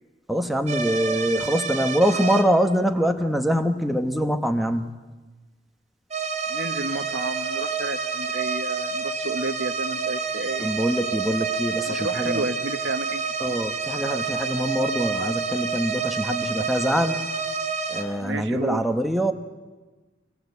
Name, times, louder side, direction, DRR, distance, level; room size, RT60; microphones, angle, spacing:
voice 1, 0.3-4.9 10.6-12.4 13.4-17.2 17.9-19.3, equal, ahead, 5 dB, 1.2 m, -24 dB
sound 1, 0.7-2.4 6.1-18.1, right 5 dB, 35° right, 1.9 m, -28 dB
voice 2, 6.5-10.7 11.9-13.6 18.2-18.8, right 2 dB, 70° right, 9 dB, 1.2 m, -31 dB
23.5 x 19.5 x 8.1 m, 1.2 s
head